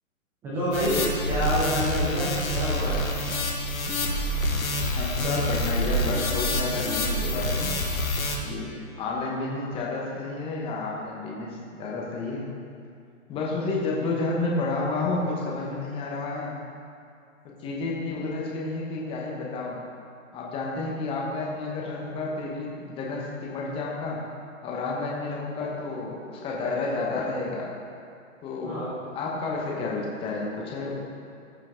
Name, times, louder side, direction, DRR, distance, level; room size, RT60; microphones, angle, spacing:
voice 1, 0.4-3.1 24.9-25.0 28.6-28.9, equal, 5° right, -8 dB, 0.5 m, -28 dB
sound 1, 0.7-8.4, left 1 dB, 80° left, 1.6 m, -27 dB
voice 2, 4.9-7.8 8.4-8.7 9.0-12.4 13.3-16.5 17.6-19.8 20.3-24.2 24.6-27.7 28.4-28.8 29.1-30.9, left 3 dB, 15° left, -3 dB, 1.1 m, -30 dB
14.5 x 5.7 x 3.7 m, 2.4 s
hypercardioid pair, 140°, 41 cm